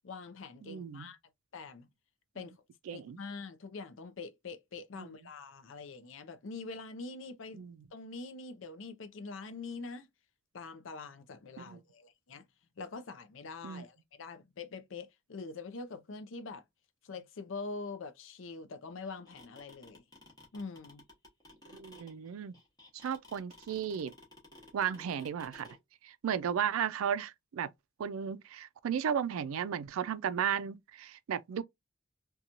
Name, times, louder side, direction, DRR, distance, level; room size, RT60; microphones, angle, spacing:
voice 1, 0.0-1.2 1.5-1.9 2.3-2.5 2.9-7.6 7.9-10.1 10.5-12.4 12.8-16.6 17.0-20.0 20.5-21.0, left 4 dB, 70° left, 0.5 m, -44 dB
voice 2, 0.6-1.1 2.9-3.2 4.9-5.1 7.5-7.8 11.7-11.8 13.6-13.8 21.7-22.5 22.9-24.1 24.7-25.7 26.0-27.7 28.0-31.6, right 8 dB, 90° right, 0.3 m, -34 dB
sound 1, 19.0-25.8, left 1 dB, 20° left, 0.9 m, -54 dB
2.8 x 2.3 x 2.4 m
head